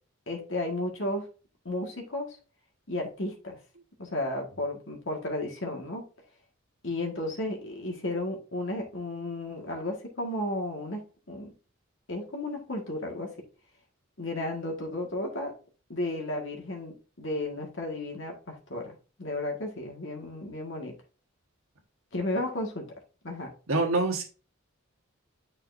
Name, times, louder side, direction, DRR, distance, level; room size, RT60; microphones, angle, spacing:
voice 1, 0.3-1.3 1.7-2.4 2.9-3.6 4.0-6.0 6.8-11.5 12.1-13.3 14.2-15.5 15.9-20.9 22.1-22.9 23.2-23.5, left 1 dB, 60° left, 1 dB, 1.7 m, -33 dB
voice 2, 23.7-24.2, right 2 dB, 80° right, 2 dB, 1.4 m, -25 dB
9.2 x 4.1 x 2.6 m, 0.35 s
head